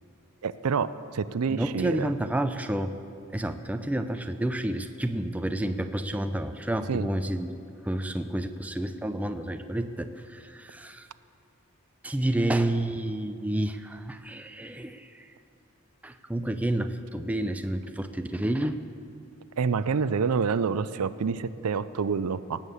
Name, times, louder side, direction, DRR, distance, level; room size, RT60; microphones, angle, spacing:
voice 1, 0.4-2.1 6.9-7.1 19.6-22.6, right 5 dB, 85° right, 14 dB, 0.5 m, -27 dB
voice 2, 1.5-3.0 3.3-7.6 7.8-11.1 12.0-15.3 16.0-18.8, right 1 dB, 5° right, 8 dB, 0.5 m, -30 dB
18.0 x 7.4 x 8.2 m, 2.6 s
head